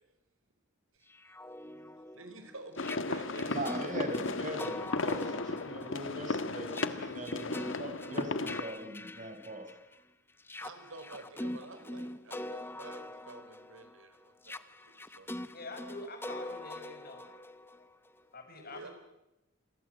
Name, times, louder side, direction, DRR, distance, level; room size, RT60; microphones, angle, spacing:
sound 1, 1.1-9.9 10.4-18.2, left 1 dB, 10° left, 0.9 m, -44 dB
voice 1, 2.1-3.6 10.6-15.3 18.6-18.9, right 2 dB, 75° right, 8 dB, 4.9 m, -50 dB
sound 2, 2.8-8.6, left 3 dB, 65° left, 1.6 m, -35 dB
voice 2, 3.5-9.7, right 1 dB, 40° right, 6 dB, 5.1 m, -41 dB
voice 3, 15.5-17.3 18.3-18.9, left 2 dB, 45° left, 5 dB, 5.4 m, -45 dB
28.5 x 23.0 x 8.0 m, 0.94 s
head